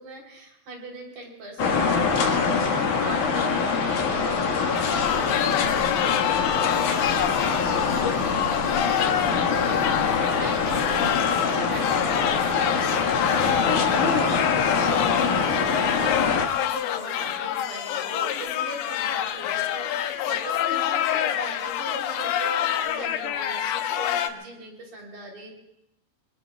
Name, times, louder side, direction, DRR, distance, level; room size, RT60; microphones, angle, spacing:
voice 1, 0.0-25.5, right 2 dB, 65° right, -1 dB, 5.3 m, -41 dB
sound 1, 1.6-16.5, left 5 dB, 60° left, 3.0 m, -24 dB
sound 2, 4.7-24.3, left 11 dB, 80° left, 2.4 m, -27 dB
25.5 x 23.5 x 2.4 m, 0.80 s
omnidirectional pair, 4.4 m